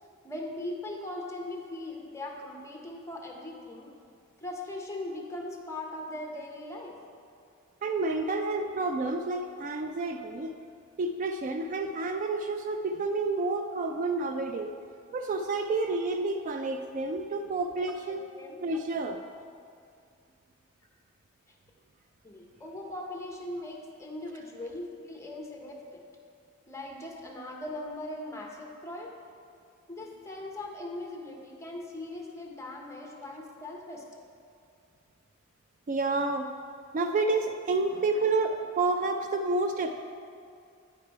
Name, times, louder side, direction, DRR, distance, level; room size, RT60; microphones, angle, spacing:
voice 1, 0.2-3.9 4.4-7.0 18.1-18.8 22.2-26.0 26.7-29.1 29.9-34.0 39.8-39.9, left 1 dB, 15° left, 0 dB, 0.9 m, -40 dB
voice 2, 7.8-10.5 11.0-14.7 15.1-18.2 18.6-19.2 35.9-36.5 36.9-39.9, right 3 dB, 40° right, 6 dB, 0.3 m, -29 dB
9.4 x 4.8 x 4.6 m, 2.4 s
head